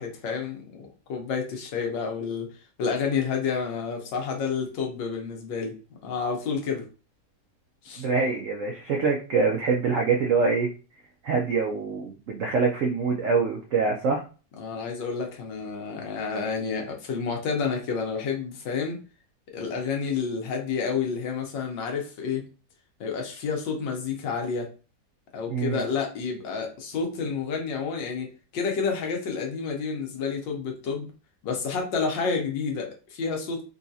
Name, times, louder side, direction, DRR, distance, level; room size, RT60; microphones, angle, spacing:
voice 1, 0.0-2.5 2.8-5.8 6.0-6.9 7.8-8.1 14.6-19.0 19.5-22.5 23.0-24.7 25.3-31.1 31.4-33.6, left 5 dB, 80° left, 2 dB, 1.5 m, -29 dB
voice 2, 8.0-10.7 11.2-14.2 25.5-25.8, right 4 dB, 90° right, 1 dB, 0.6 m, -25 dB
3.9 x 2.3 x 2.6 m, 0.35 s
omnidirectional pair, 2.0 m